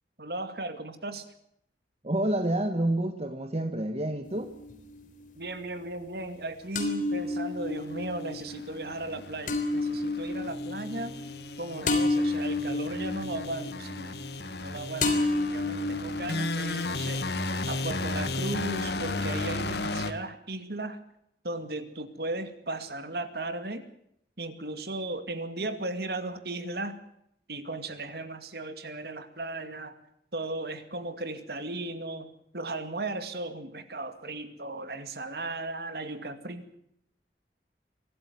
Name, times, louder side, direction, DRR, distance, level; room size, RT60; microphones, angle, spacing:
voice 1, 0.2-1.3 5.3-11.1 11.6-14.2 14.6-17.2 17.7-21.0 21.4-23.9 24.4-27.0 27.5-30.0 30.3-36.7, right 2 dB, 60° right, 10 dB, 2.2 m, -36 dB
voice 2, 2.0-4.5, right 1 dB, 35° right, 8 dB, 1.4 m, -28 dB
sound 1, 4.2-5.1 6.8-14.7 15.0-17.1, left 2 dB, 50° left, 3.5 m, -31 dB
sound 2, 7.7-20.1, left 2 dB, 65° left, 1.6 m, -35 dB
24.0 x 13.5 x 9.6 m, 0.74 s
head